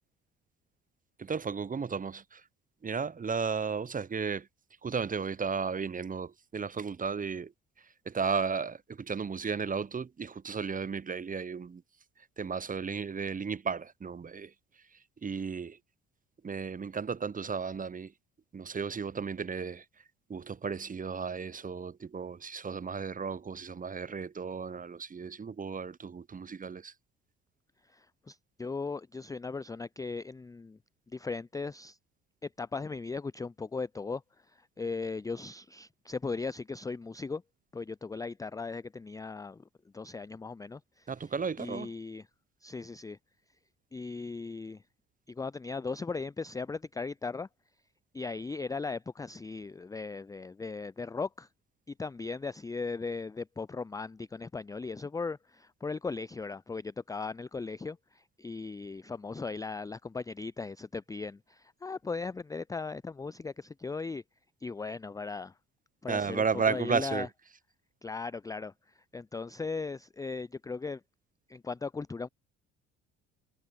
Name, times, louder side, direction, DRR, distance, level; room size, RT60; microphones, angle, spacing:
voice 1, 1.2-2.4 2.8-4.5 4.8-7.5 8.1-11.8 12.4-14.5 15.2-15.8 16.4-18.1 18.5-19.8 20.3-26.9 41.1-41.9 66.1-67.3, right 5 dB, 20° right, 1.0 m, -34 dB
voice 2, 27.8-30.8 31.1-32.0 32.4-34.2 34.5-37.4 37.7-39.7 39.9-41.3 41.6-42.3 42.6-43.2 43.9-44.8 45.3-47.5 48.1-51.5 51.9-64.2 64.6-65.6 66.0-67.3 68.0-71.0 71.5-72.3, left 4 dB, 10° left, 0.5 m, -38 dB
figure-of-eight pair, 55°, 36 cm